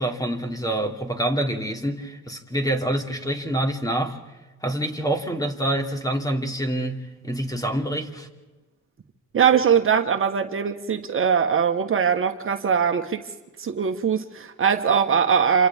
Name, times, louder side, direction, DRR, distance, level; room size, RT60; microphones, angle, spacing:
voice 1, 0.0-4.2 4.6-8.3, right 1 dB, 10° left, 2.7 m, -26 dB
voice 2, 9.3-13.2 13.6-15.7, right 7 dB, 45° right, 1.4 m, -21 dB
28.0 x 27.0 x 3.6 m
cardioid pair, 90°, 30 cm